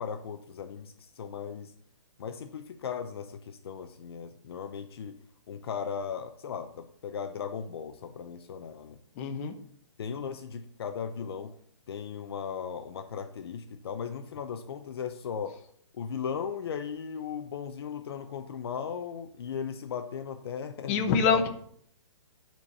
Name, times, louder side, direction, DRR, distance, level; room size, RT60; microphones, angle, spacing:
voice 1, 0.0-1.7 2.2-5.2 5.5-9.0 10.0-11.5 11.9-15.6 15.9-21.5, left 7 dB, 55° left, 8 dB, 0.8 m, -37 dB
voice 2, 9.2-9.5 20.9-21.5, left 6 dB, 30° left, 5 dB, 1.0 m, -25 dB
9.6 x 4.6 x 6.7 m, 0.65 s
hypercardioid pair, 155°, 16 cm